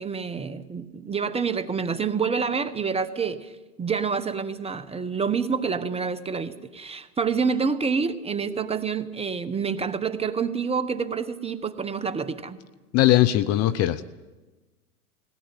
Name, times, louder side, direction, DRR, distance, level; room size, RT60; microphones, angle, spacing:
voice 1, 0.0-3.5 3.8-12.6, right 5 dB, 15° right, 12 dB, 1.0 m, -27 dB
voice 2, 12.9-14.2, left 14 dB, 35° left, 15 dB, 0.7 m, -20 dB
20.5 x 17.0 x 9.0 m, 1.2 s
hypercardioid pair, 105°, 45 cm